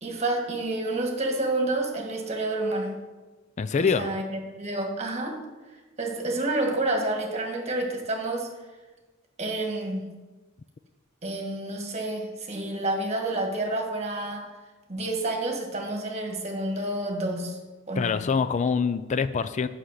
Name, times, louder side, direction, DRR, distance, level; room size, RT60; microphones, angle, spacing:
voice 1, 0.0-3.0 3.8-4.2 4.6-5.4 6.0-8.5 9.4-10.1 11.2-14.5 14.9-17.6 17.9-18.1, right 2 dB, 35° right, 2 dB, 1.5 m, -29 dB
voice 2, 3.6-4.1 18.0-19.7, left 5 dB, 35° left, 13 dB, 0.3 m, -25 dB
7.9 x 5.8 x 6.4 m, 1.2 s
head